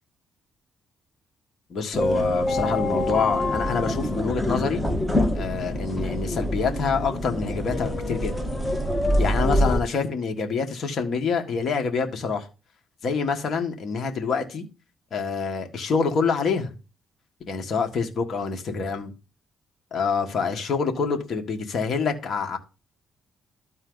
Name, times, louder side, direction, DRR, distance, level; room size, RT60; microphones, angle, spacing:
voice 1, 1.7-4.8 5.3-8.4 9.2-12.5 13.0-14.6 15.1-16.7 17.5-19.1 19.9-22.6, left 5 dB, 55° left, 1.7 m, -26 dB
sound 1, 1.9-9.8, left 1 dB, 10° left, 1.5 m, -25 dB
13.0 x 4.4 x 3.9 m
cardioid pair, 90°, 0 cm